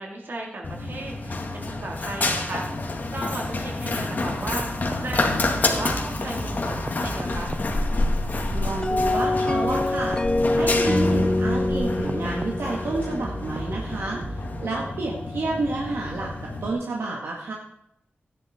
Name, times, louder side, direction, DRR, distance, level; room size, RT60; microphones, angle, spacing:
voice 1, 0.0-2.7 3.1-7.5 14.6-14.9, right 2 dB, 60° right, -1 dB, 3.9 m, -35 dB
Run, 0.6-16.7, left 2 dB, 50° left, 2.1 m, -29 dB
sound 1, 4.3-14.7, right 2 dB, 25° right, 0.5 m, -36 dB
voice 2, 8.5-10.2 10.5-17.5, right 2 dB, 80° right, -2 dB, 2.0 m, -30 dB
sound 2, 8.8-14.0, left 2 dB, 20° left, 0.6 m, -25 dB
15.0 x 11.0 x 4.5 m, 0.78 s
wide cardioid pair, 100°, 4 cm